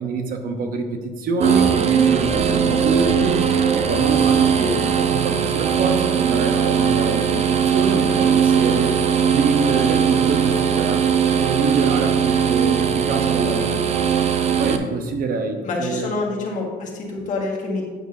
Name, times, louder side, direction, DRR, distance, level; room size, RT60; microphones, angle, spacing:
voice 1, 0.0-3.4 3.7-9.0 9.3-11.1 11.4-14.0 14.6-16.1, right 4 dB, 60° right, 6 dB, 0.9 m, -25 dB
sound 1, 1.4-14.8, right 7 dB, 40° right, 0.5 m, -19 dB
voice 2, 15.6-17.9, left 3 dB, 50° left, -2 dB, 1.7 m, -27 dB
9.2 x 6.2 x 2.7 m, 1.4 s
cardioid pair, 110°, 17 cm